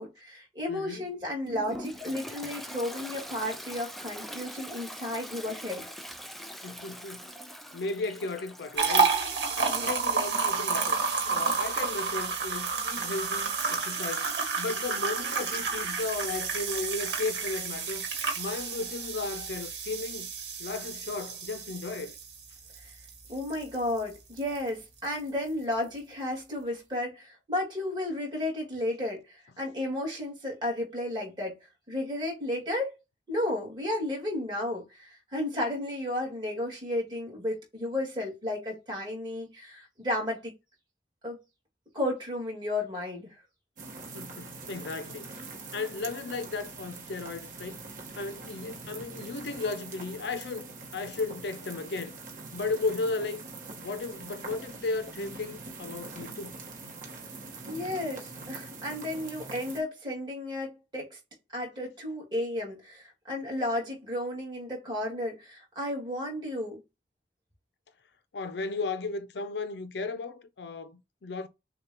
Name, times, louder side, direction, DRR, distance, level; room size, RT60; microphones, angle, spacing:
voice 1, 0.0-5.9 9.7-9.9 22.8-22.9 23.3-31.6 31.9-33.0 33.3-40.5 41.2-41.4 41.9-43.4 57.7-61.2 61.5-66.8, left 1 dB, 25° right, 2.1 m, -33 dB
voice 2, 0.7-1.1 6.6-7.4 7.7-9.1 9.6-18.1 18.4-20.3 20.6-22.2 44.1-45.5 45.7-47.9 48.2-52.2 52.5-53.4 53.8-56.6 68.3-71.5, left 3 dB, 70° left, 0.5 m, -35 dB
Toilet flush, 1.5-10.0, equal, ahead, 0.5 m, -43 dB
sound 1, 8.8-24.0 24.4-24.6 25.0-25.1, right 5 dB, 65° right, 1.5 m, -30 dB
sound 2, 43.8-59.8, right 3 dB, 50° right, 1.3 m, -43 dB
6.5 x 2.3 x 2.9 m
head